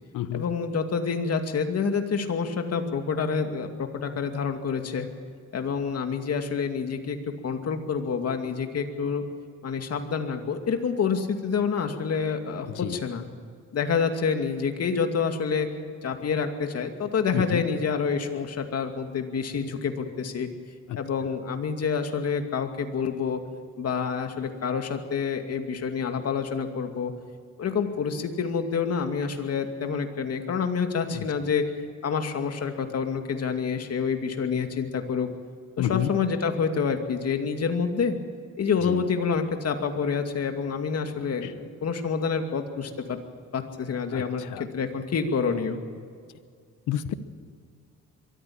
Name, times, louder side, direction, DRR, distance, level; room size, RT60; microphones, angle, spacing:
voice 1, 0.3-5.1 5.5-7.2 7.4-9.2 9.6-13.2 13.7-15.7 16.0-20.5 21.0-23.4 23.8-27.1 27.6-31.6 32.0-35.3 35.8-38.2 38.6-43.2 43.5-44.4 44.7-45.8, left 6 dB, 55° left, 5 dB, 2.5 m, -27 dB
voice 2, 35.8-36.1 38.9-39.0 41.4-41.5 44.1-44.6 46.9-47.1, left 11 dB, 90° left, 13 dB, 1.2 m, -29 dB
23.0 x 14.5 x 8.8 m, 2.1 s
cardioid pair, 90°, 30 cm